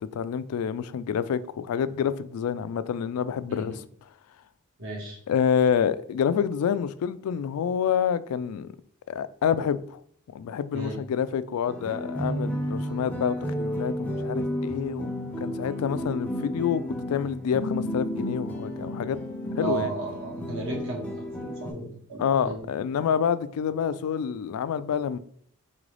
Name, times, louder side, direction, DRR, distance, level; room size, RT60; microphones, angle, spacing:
voice 1, 0.0-3.8 5.3-8.7 9.1-10.0 10.3-15.1 15.4-19.2 19.5-19.9 22.2-25.2, left 7 dB, 85° left, 0.3 m, -27 dB
voice 2, 4.8-5.2 10.7-11.0 19.6-22.6, right 3 dB, 60° right, 1.4 m, -34 dB
sound 1, 11.7-21.7, equal, 5° left, 0.5 m, -32 dB
3.8 x 3.7 x 3.2 m
head